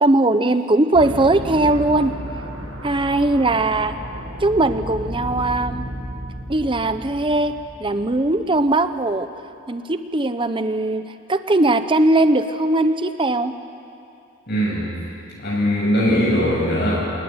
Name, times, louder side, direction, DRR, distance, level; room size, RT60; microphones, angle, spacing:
voice 1, 0.0-2.1 2.8-4.0 4.4-5.9 6.5-9.3 9.7-11.0 11.3-13.5, right 2 dB, 25° right, 10 dB, 0.9 m, -19 dB
sound 1, 0.9-9.0, right 1 dB, 75° right, 6.0 m, -33 dB
voice 2, 14.5-14.9 15.4-17.0, equal, 55° left, -4 dB, 7.7 m, -20 dB
29.5 x 18.5 x 9.6 m, 2.6 s
head